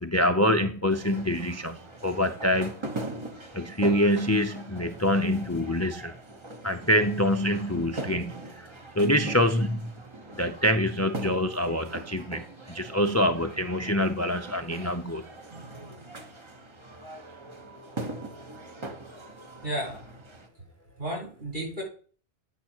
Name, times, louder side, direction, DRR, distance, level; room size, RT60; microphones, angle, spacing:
voice 1, 0.0-2.7 3.5-6.1 6.6-8.7 9.0-9.9 10.4-15.2, equal, 25° left, 7 dB, 0.3 m, -25 dB
sound 1, 0.9-20.5, right 2 dB, 30° right, 1.0 m, -41 dB
voice 2, 19.6-20.0 21.0-21.8, right 1 dB, 55° right, -2 dB, 4.6 m, -32 dB
8.8 x 5.8 x 4.4 m, 0.41 s
omnidirectional pair, 1.1 m